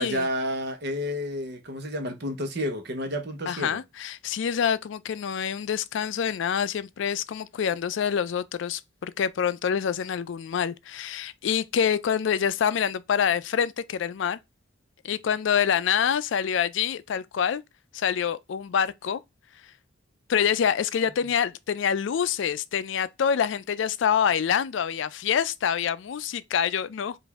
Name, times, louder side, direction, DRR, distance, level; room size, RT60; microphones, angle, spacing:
voice 1, 0.0-3.8, equal, 55° right, 0.9 m, -30 dB
voice 2, 3.5-14.4 15.0-17.6 17.9-19.2 20.3-27.2, left 8 dB, 70° left, 0.4 m, -26 dB
5.0 x 2.6 x 3.4 m
head